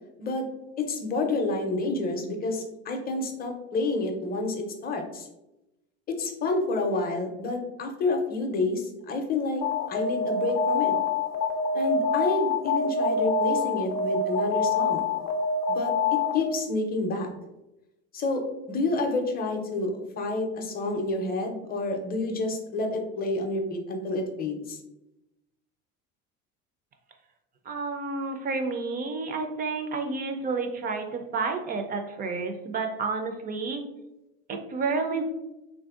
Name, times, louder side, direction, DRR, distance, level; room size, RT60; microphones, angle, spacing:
voice 1, 0.8-5.3 6.1-10.9 11.7-15.1 15.7-17.3 18.1-24.8, left 2 dB, 30° left, 3 dB, 0.5 m, -29 dB
Alarm, 9.6-16.7, left 4 dB, 85° left, 0.5 m, -26 dB
voice 2, 27.7-33.8 34.5-35.2, right 4 dB, 30° right, 5 dB, 0.4 m, -30 dB
3.3 x 2.6 x 2.4 m, 0.94 s
supercardioid pair, 120°, 31 cm